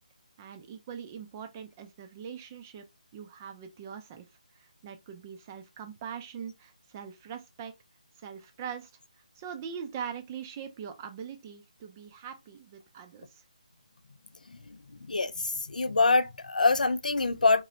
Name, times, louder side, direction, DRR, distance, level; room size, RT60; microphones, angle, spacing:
voice 1, 0.4-2.9 3.1-4.3 4.5-7.7 8.2-8.9 9.4-13.4, right 7 dB, 20° right, 0.5 m, -42 dB
voice 2, 15.7-17.6, left 3 dB, 80° left, 0.5 m, -24 dB
3.0 x 3.0 x 2.6 m
figure-of-eight pair, 160°, 4 cm